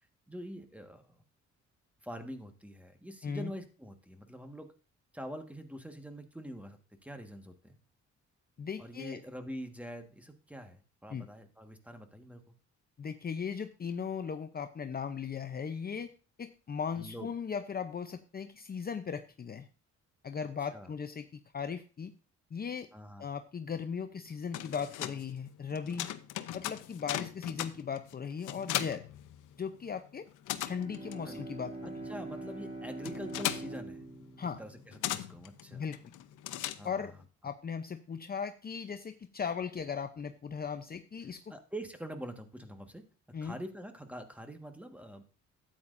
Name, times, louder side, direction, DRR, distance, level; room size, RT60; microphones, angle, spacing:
voice 1, 0.3-1.2 2.0-4.7 5.1-7.8 8.8-12.5 17.0-17.3 20.7-20.9 22.9-23.3 31.2-31.4 31.8-34.0 34.6-35.9 36.8-37.1 41.5-43.0 43.4-45.2, equal, 5° right, 6 dB, 1.5 m, -45 dB
voice 2, 8.6-9.2 11.1-11.3 13.0-16.1 16.4-19.7 20.2-22.1 22.5-22.9 23.2-26.1 26.5-29.0 29.6-30.3 30.7-31.9 34.4-34.6 35.7-36.1 36.8-37.1 37.4-41.5 43.3-43.6, left 6 dB, 30° left, 8 dB, 0.6 m, -38 dB
sound 1, 24.3-29.9 30.1-37.2, left 13 dB, 85° left, 0.8 m, -39 dB
Bowed string instrument, 30.5-35.9, right 2 dB, 20° right, 2.8 m, -44 dB
12.5 x 8.8 x 2.6 m, 0.36 s
cardioid pair, 90°, 30 cm